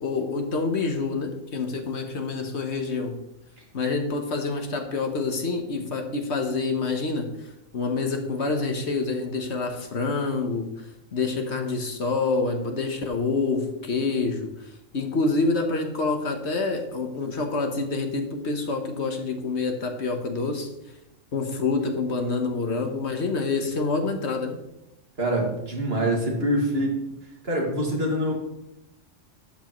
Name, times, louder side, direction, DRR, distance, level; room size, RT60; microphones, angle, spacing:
voice 1, 0.0-3.1 3.7-7.3 7.7-10.7 11.1-14.5 14.9-20.7 21.3-24.6, left 3 dB, 60° left, 5 dB, 1.4 m, -27 dB
voice 2, 25.2-27.0 27.4-28.3, right 1 dB, 50° right, -1 dB, 2.3 m, -25 dB
11.5 x 8.1 x 3.1 m, 0.86 s
omnidirectional pair, 1.3 m